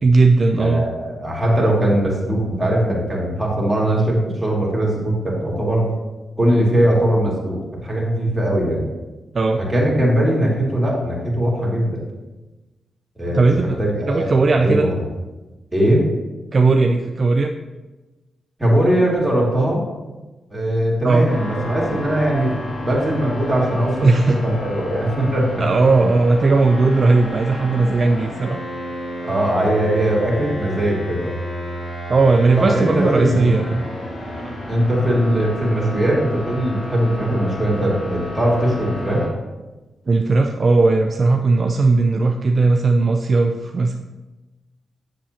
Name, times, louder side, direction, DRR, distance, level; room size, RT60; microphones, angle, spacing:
voice 1, 0.0-0.8 9.3-9.6 13.3-13.8 14.1-14.9 16.5-17.5 21.0-21.3 24.0-24.4 25.6-28.6 32.1-33.8 34.3-34.6 40.1-44.0, right 3 dB, 45° right, 3 dB, 0.5 m, -17 dB
voice 2, 0.5-5.9 6.4-8.9 9.7-12.0 13.2-15.0 15.7-16.0 18.6-19.8 20.5-22.5 22.8-25.6 29.2-31.3 32.6-33.6 34.7-39.2, right 1 dB, 10° right, -4 dB, 2.5 m, -20 dB
sound 1, 21.3-39.3, left 1 dB, 60° left, 1.7 m, -31 dB
7.3 x 6.9 x 2.9 m, 1.1 s
cardioid pair, 80°, 0 cm